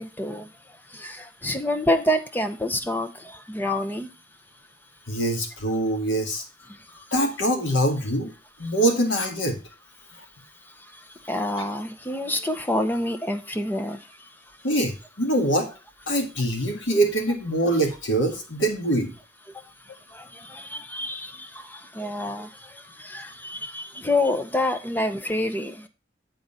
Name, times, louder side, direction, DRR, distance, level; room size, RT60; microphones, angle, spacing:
voice 1, 0.0-4.1 6.7-7.1 10.4-14.6 19.5-25.9, left 1 dB, 10° left, 8 dB, 0.7 m, -28 dB
voice 2, 5.1-6.4 7.1-8.3 8.6-9.6 14.6-15.7 16.1-19.1, right 1 dB, 85° left, 4 dB, 1.9 m, -24 dB
9.4 x 3.9 x 5.4 m, 0.31 s
head